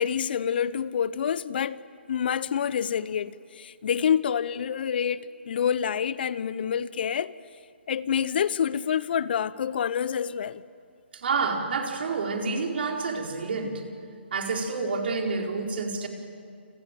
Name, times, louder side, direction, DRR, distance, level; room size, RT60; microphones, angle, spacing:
voice 1, 0.0-1.8 2.1-7.3 7.9-10.6, left 8 dB, 55° left, 0.9 m, -27 dB
voice 2, 11.1-13.8 14.3-16.1, right 4 dB, 60° right, 4.6 m, -28 dB
29.5 x 26.0 x 7.7 m
figure-of-eight pair, 135°, 6 cm